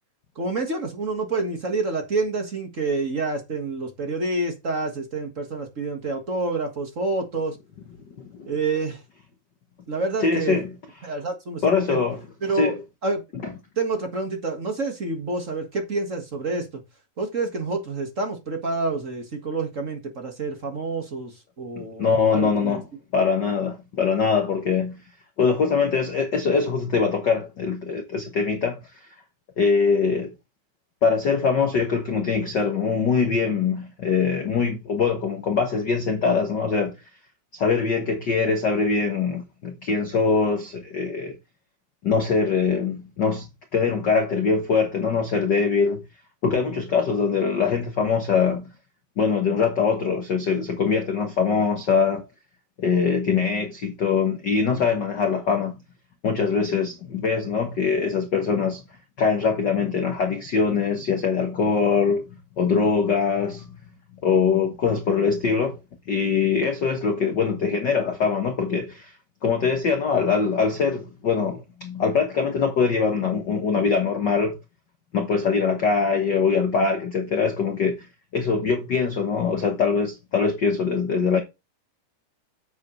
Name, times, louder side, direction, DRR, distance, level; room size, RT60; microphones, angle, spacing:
voice 1, 0.3-7.6 8.5-9.0 9.9-10.6 11.0-12.0 12.4-12.7 13.0-13.2 13.7-16.8 17.2-22.8, right 3 dB, 35° right, 1.2 m, -28 dB
voice 2, 7.9-8.5 10.2-11.1 11.6-12.8 13.3-13.6 21.8-22.9 23.1-25.0 25.4-28.8 29.6-30.3 31.0-37.0 37.5-41.4 42.0-43.5 43.7-46.0 46.4-48.7 49.2-52.3 52.8-55.8 56.2-58.8 59.2-62.3 62.6-63.8 64.2-65.8 66.1-69.1 69.4-74.6 75.1-78.1 78.3-81.4, left 5 dB, 70° left, 1.0 m, -23 dB
9.4 x 7.5 x 3.2 m
omnidirectional pair, 3.9 m